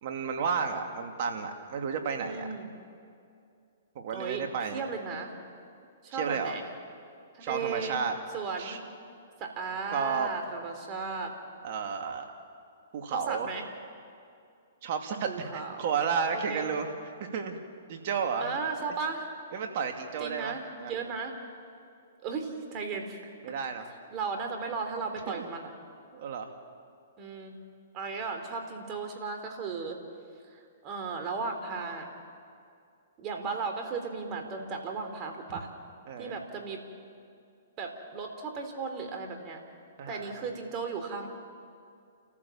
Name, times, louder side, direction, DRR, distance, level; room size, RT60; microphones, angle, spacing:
voice 1, 0.0-2.5 3.9-4.8 6.1-6.6 7.4-8.2 8.6-8.8 9.9-10.3 11.6-12.3 12.9-13.5 14.8-17.6 17.9-18.6 19.5-20.9 23.4-23.9 25.3-25.5 26.1-26.5 36.1-36.3 40.0-40.5, right 6 dB, 50° right, 4 dB, 2.4 m, -32 dB
voice 2, 2.2-2.7 4.1-4.4 4.7-5.3 6.0-6.7 7.3-8.0 8.3-8.8 9.4-11.3 13.3-13.6 15.2-16.7 18.4-19.3 20.2-20.6 20.9-21.3 22.2-23.2 24.1-25.7 27.2-27.5 27.9-30.0 30.5-32.1 33.2-35.7 36.2-36.8 37.8-39.6 40.1-41.3, right 5 dB, 30° right, 4 dB, 3.5 m, -35 dB
29.5 x 14.5 x 7.3 m, 2.5 s
hypercardioid pair, 130°, 0 cm